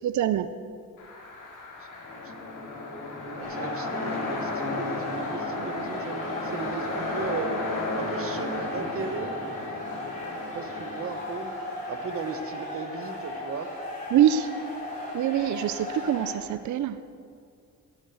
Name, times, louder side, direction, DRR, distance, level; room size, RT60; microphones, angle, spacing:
voice 1, 0.0-0.5 14.1-14.5 15.1-17.0, right 10 dB, 60° right, 12 dB, 0.5 m, -24 dB
sound 1, 1.0-12.3, left 2 dB, 65° left, 2.6 m, -34 dB
sound 2, 3.4-16.3, left 1 dB, 20° left, 3.0 m, -37 dB
voice 2, 3.4-7.6 8.0-9.3 10.5-11.5 11.9-13.7, right 5 dB, 40° right, 9 dB, 0.9 m, -36 dB
11.5 x 8.4 x 8.1 m, 2.3 s
wide cardioid pair, 180°, 33 cm